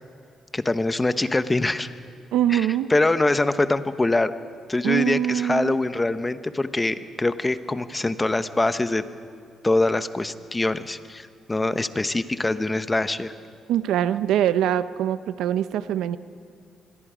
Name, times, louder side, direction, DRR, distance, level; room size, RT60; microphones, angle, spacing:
voice 1, 0.5-1.9 2.5-4.3 4.7-9.0 9.6-13.3, left 2 dB, 15° left, 11 dB, 0.9 m, -24 dB
voice 2, 2.3-2.9 4.8-5.7 13.7-16.2, right 11 dB, 85° right, 14 dB, 0.7 m, -23 dB
25.5 x 21.5 x 5.1 m, 2.3 s
cardioid pair, 90°, 0 cm